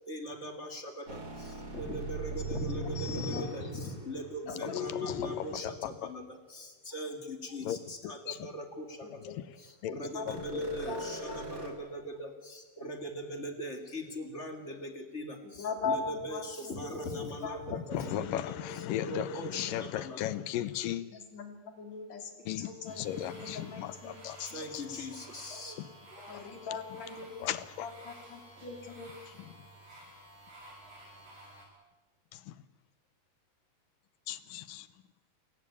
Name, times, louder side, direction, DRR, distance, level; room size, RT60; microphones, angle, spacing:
voice 1, 0.1-20.2 24.5-25.8 26.1-26.5 27.4-27.5, equal, 25° left, 5 dB, 2.3 m, -41 dB
sound 1, 1.1-5.3 10.3-11.7, right 3 dB, 30° right, 3.3 m, -40 dB
voice 2, 3.0-3.4 4.5-5.4 9.2-9.4 10.1-11.4 15.6-16.4 16.9-17.1 17.4-17.6 18.3-18.8 21.1-22.3 22.6-24.1 24.4-25.1 26.3-27.5 27.8-29.1, left 5 dB, 55° left, 5 dB, 3.8 m, -39 dB
voice 3, 4.8-5.6 7.7-7.8 8.3-8.4 9.8-9.9 10.3-10.4 17.9-21.0 22.5-24.6 25.8-25.9 27.4-27.9 34.3-34.9, left 12 dB, 85° left, 15 dB, 2.6 m, -36 dB
sound 2, 22.9-31.6, right 1 dB, 80° right, 8.6 m, -52 dB
28.5 x 15.5 x 8.7 m, 1.3 s
omnidirectional pair, 3.9 m